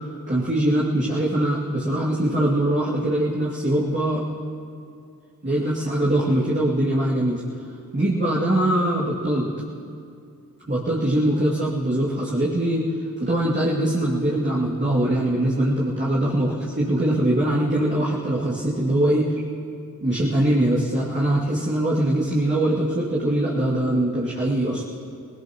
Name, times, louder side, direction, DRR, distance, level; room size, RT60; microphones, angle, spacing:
voice 1, 0.3-4.2 5.4-7.4 7.9-9.5 10.7-12.8 13.2-19.2 20.0-24.8, right 1 dB, 30° right, -8 dB, 2.6 m, -22 dB
20.5 x 19.0 x 3.1 m, 2.5 s
cardioid pair, 45°, 36 cm